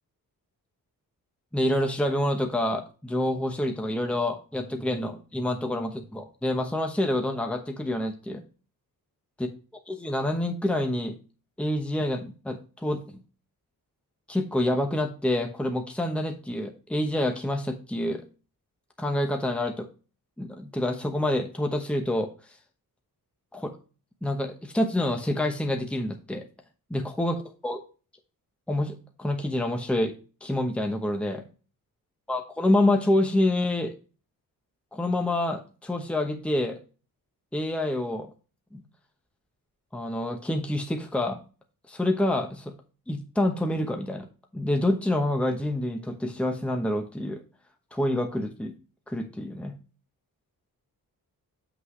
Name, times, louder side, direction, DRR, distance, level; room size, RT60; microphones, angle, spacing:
voice 1, 1.5-8.4 10.0-11.2 11.6-13.2 14.3-18.2 19.0-19.9 20.4-22.3 23.5-23.7 24.2-26.5 26.9-27.4 27.6-27.8 28.7-30.1 30.4-31.4 32.3-33.9 34.9-36.8 37.5-38.3 38.7-38.8 39.9-41.4 41.9-42.7 43.1-44.3 44.5-47.4 47.9-48.7 49.1-49.7, left 1 dB, 5° left, 4 dB, 1.0 m, -27 dB
7.8 x 6.1 x 3.1 m, 0.34 s
wide cardioid pair, 160°, 37 cm